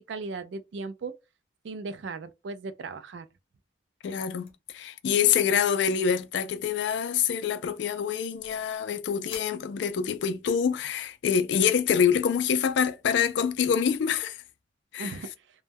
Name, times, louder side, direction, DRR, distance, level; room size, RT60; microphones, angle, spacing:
voice 1, 0.1-1.1 1.6-3.3 15.0-15.3, right 3 dB, 75° right, 0.3 m, -37 dB
voice 2, 4.0-14.4 14.9-15.2, left 7 dB, 70° left, 0.3 m, -26 dB
sound 1, 4.4-4.7 5.0-5.3 5.6-5.7 6.2-6.5 6.9-7.1 7.6-8.8 9.3-10.3, left 5 dB, 30° left, 0.6 m, -50 dB
2.1 x 2.1 x 3.3 m
head